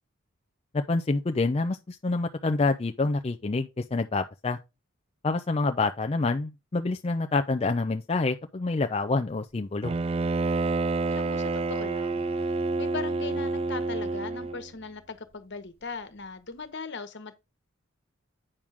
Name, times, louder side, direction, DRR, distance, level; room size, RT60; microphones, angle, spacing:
voice 1, 0.7-4.6 5.2-9.9, left 3 dB, 30° left, 0.5 m, -27 dB
Bowed string instrument, 9.8-14.7, right 3 dB, 30° right, 0.4 m, -28 dB
voice 2, 11.1-12.5 12.8-17.4, left 4 dB, 60° left, 1.3 m, -39 dB
8.7 x 6.1 x 3.6 m
head